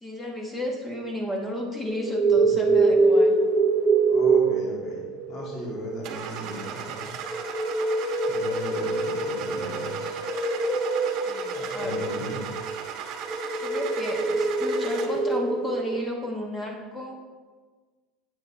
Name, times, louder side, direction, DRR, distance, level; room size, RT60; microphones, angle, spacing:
voice 1, 0.0-3.4 11.3-12.1 13.6-17.2, left 1 dB, 10° left, 0 dB, 1.1 m, -33 dB
sound 1, 1.9-16.0, right 3 dB, 15° right, 0.6 m, -25 dB
voice 2, 4.1-7.1 8.3-10.1 11.5-12.5, equal, 40° left, -3 dB, 2.3 m, -37 dB
Car / Engine starting, 6.0-15.3, right 7 dB, 50° right, 1.0 m, -37 dB
9.3 x 8.0 x 3.3 m, 1.4 s
supercardioid pair, 135°, 0 cm